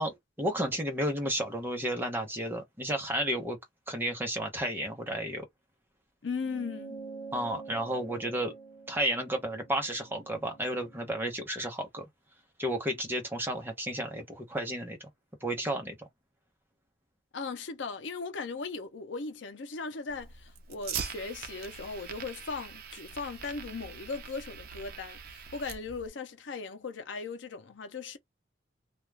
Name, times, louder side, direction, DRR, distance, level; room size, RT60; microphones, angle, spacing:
voice 1, 0.0-3.6 3.9-5.4 7.3-8.5 8.9-12.1 12.6-15.1 15.4-15.9, right 1 dB, 10° right, 0.8 m, -32 dB
voice 2, 6.2-7.0 17.3-28.2, left 4 dB, 75° left, 0.6 m, -38 dB
sound 1, 6.4-11.2, right 4 dB, 35° left, 1.2 m, -46 dB
Fire, 20.1-26.1, right 7 dB, 55° right, 0.5 m, -42 dB
2.4 x 2.3 x 3.2 m
head